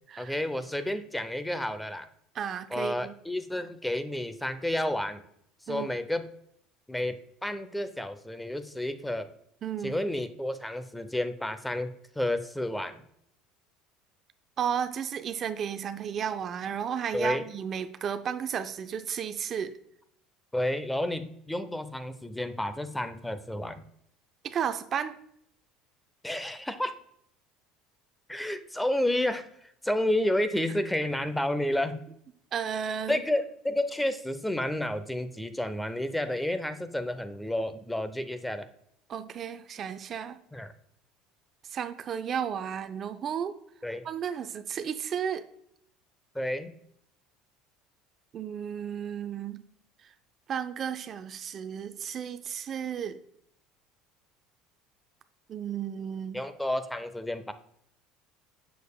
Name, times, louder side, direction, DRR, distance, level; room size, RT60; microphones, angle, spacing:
voice 1, 0.2-2.1 2.7-5.2 5.7-6.3 6.9-9.3 9.8-13.0 17.1-17.5 20.5-23.8 26.2-26.9 28.3-29.5 29.8-32.0 33.1-38.7 40.5-40.7 43.8-44.0 46.3-46.8 56.3-57.5, left 1 dB, 5° left, 11 dB, 0.6 m, -31 dB
voice 2, 2.3-3.1 5.7-5.9 9.6-10.0 14.6-19.8 24.4-25.2 32.5-33.2 39.1-40.4 41.7-43.5 44.0-45.4 48.3-49.6 50.5-53.2 55.5-56.4, right 8 dB, 45° right, 10 dB, 0.4 m, -33 dB
6.9 x 6.3 x 2.3 m, 0.71 s
hypercardioid pair, 80°, 0 cm